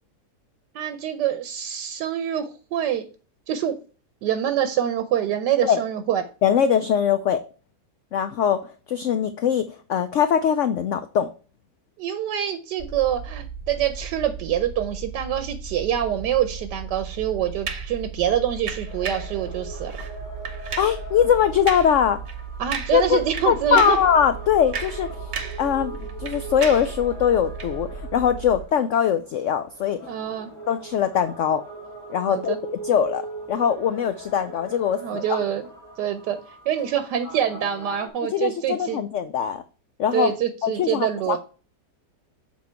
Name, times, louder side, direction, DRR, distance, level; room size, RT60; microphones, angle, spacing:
voice 1, 0.7-3.1 3.5-3.8 4.2-6.2 12.0-19.9 22.6-24.0 30.0-30.5 32.3-32.6 35.0-35.6 36.0-39.0 40.1-41.4, right 10 dB, 85° right, 9 dB, 1.3 m, -25 dB
voice 2, 6.4-7.4 8.1-11.3 20.8-22.2 22.9-23.2 23.4-25.3 25.6-30.0 30.7-31.6 32.1-32.5 32.8-33.2 33.5-35.4 38.3-39.6 40.0-40.3 40.6-41.4, left 8 dB, 85° left, 10 dB, 0.6 m, -22 dB
sound 1, 12.8-28.6, right 5 dB, 45° left, 1.4 m, -37 dB
sound 2, 17.7-18.0 18.7-19.3 19.9-20.1 20.4-21.0 21.7-22.0 22.3-22.4 22.7-23.1 23.3-24.1 24.5-25.7 25.9-27.0 27.6-27.7, right 5 dB, 50° right, 0.9 m, -33 dB
sound 3, 18.9-38.1, right 2 dB, 10° left, 1.4 m, -41 dB
7.4 x 4.1 x 4.4 m, 0.37 s
omnidirectional pair, 1.8 m